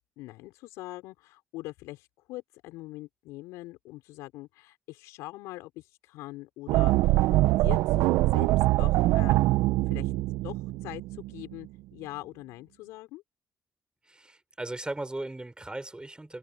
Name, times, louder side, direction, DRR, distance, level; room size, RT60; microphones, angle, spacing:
voice 1, 0.2-9.4 9.9-10.1 10.4-13.2, left 19 dB, 80° left, 5.7 m, -43 dB
sound 1, 6.7-11.7, right 18 dB, 75° right, 1.2 m, -24 dB
voice 2, 14.1-16.4, right 2 dB, 20° right, 6.3 m, -37 dB
hypercardioid pair, 40°, 5 cm